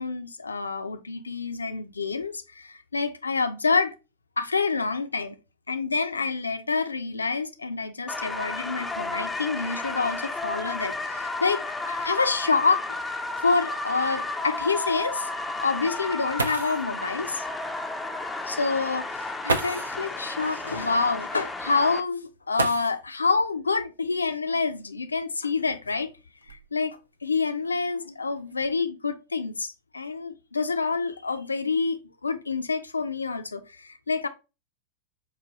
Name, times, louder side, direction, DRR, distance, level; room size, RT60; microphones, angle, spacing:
voice 1, 0.0-3.9 4.4-5.4 5.7-15.3 15.6-17.4 18.5-26.1 26.5-29.7 29.9-34.3, left 4 dB, 75° left, 0.4 m, -27 dB
sound 1, 8.1-22.0, left 2 dB, 5° left, 0.4 m, -33 dB
sound 2, 12.5-12.6 13.0-13.1 13.7-13.8 16.0-16.1 16.4-16.9 18.2-18.3 19.4-20.0 22.5-23.3 24.6-24.7 25.5-26.9 27.6-28.0 28.3-28.7, right 3 dB, 70° right, 0.4 m, -32 dB
4.7 x 2.3 x 2.8 m
figure-of-eight pair, 90°, 0 cm